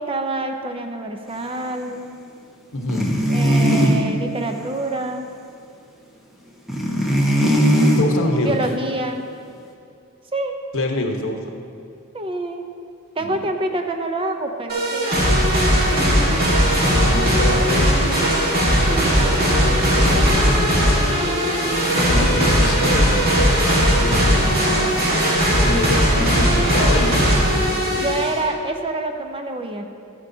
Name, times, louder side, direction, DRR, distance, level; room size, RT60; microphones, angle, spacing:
voice 1, 0.0-2.2 3.3-5.3 8.4-9.3 10.3-10.5 12.1-12.7 13.2-15.1 28.0-29.9, right 2 dB, 25° right, 5 dB, 0.6 m, -26 dB
voice 2, 2.7-3.2 7.9-8.6 10.7-11.6 13.2-13.4 16.8-18.0 19.5-20.3 21.9-23.7 24.0-25.0 25.6-28.1, left 1 dB, 65° left, 2 dB, 1.1 m, -26 dB
sound 1, 2.9-4.0 6.7-8.0, equal, ahead, 1.1 m, -17 dB
sound 2, 14.7-28.4, equal, 45° right, 1.7 m, -18 dB
sound 3, 18.2-23.6, equal, 65° right, 1.7 m, -32 dB
13.0 x 9.7 x 2.8 m, 2.5 s
head